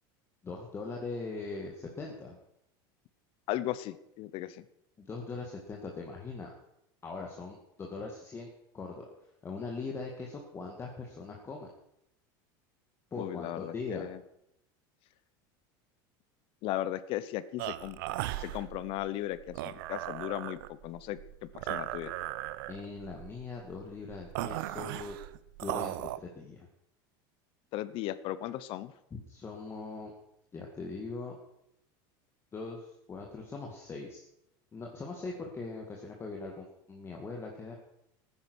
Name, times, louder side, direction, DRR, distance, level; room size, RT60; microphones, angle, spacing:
voice 1, 0.4-2.4 5.0-6.5 7.0-8.5 8.7-9.1 9.4-11.7 13.1-14.1 22.7-25.2 25.6-26.7 29.1-30.1 30.5-31.4 32.5-34.2 34.7-37.7, left 3 dB, 20° left, 0 dB, 2.0 m, -41 dB
voice 2, 3.5-4.6 13.2-14.2 16.6-18.0 18.4-22.1 27.7-28.9, left 14 dB, 50° left, 16 dB, 0.8 m, -36 dB
sound 1, 17.6-26.2, right 15 dB, 80° right, 0.7 m, -38 dB
14.5 x 9.9 x 6.3 m, 0.81 s
supercardioid pair, 135°, 11 cm